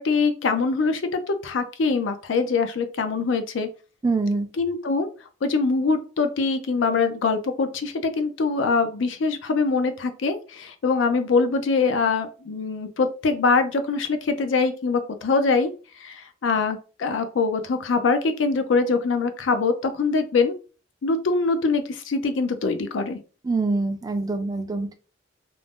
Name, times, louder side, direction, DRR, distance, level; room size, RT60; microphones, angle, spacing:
voice 1, 0.0-3.7 4.6-5.1 5.4-15.7 16.0-20.5 21.0-23.2, left 4 dB, 75° left, 0.5 m, -23 dB
voice 2, 4.0-4.5 23.4-25.0, right 3 dB, 20° right, 0.3 m, -24 dB
2.5 x 2.0 x 3.4 m
head